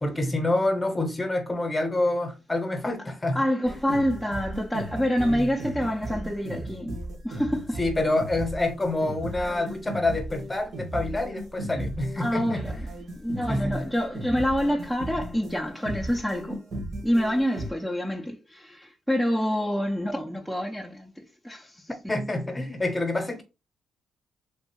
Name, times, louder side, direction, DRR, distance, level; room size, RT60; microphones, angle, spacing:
voice 1, 0.0-3.4 3.7-3.8 5.3-5.5 7.8-12.6 13.5-13.8 22.1-23.4, left 2 dB, 15° left, 1.0 m, -27 dB
voice 2, 3.3-7.8 9.3-9.5 12.2-12.8 13.2-16.6 17.0-21.9, equal, 5° right, 0.6 m, -27 dB
sound 1, 3.7-17.7, right 1 dB, 60° right, 1.2 m, -36 dB
3.3 x 2.6 x 3.1 m
cardioid pair, 90°, 0 cm